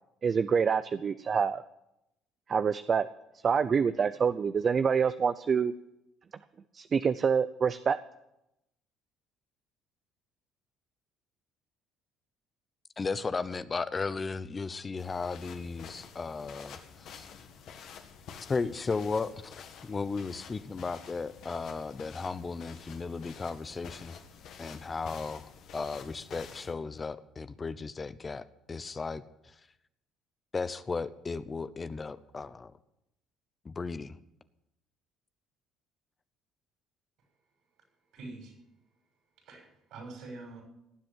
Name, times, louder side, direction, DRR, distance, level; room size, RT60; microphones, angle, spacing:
voice 1, 0.2-1.6 2.5-3.1 3.4-5.7 6.7-8.0, right 6 dB, 40° right, 12 dB, 0.6 m, -26 dB
voice 2, 13.0-17.3 18.5-24.2 24.6-29.6 30.5-32.7 33.6-34.2, left 4 dB, 30° left, 13 dB, 0.8 m, -35 dB
sound 1, 15.0-26.7, left 7 dB, 65° left, 1.9 m, -49 dB
voice 3, 38.1-38.6 39.4-40.6, right 3 dB, 65° right, 3 dB, 6.7 m, -45 dB
18.5 x 7.8 x 9.0 m, 0.86 s
hypercardioid pair, 65°, 0 cm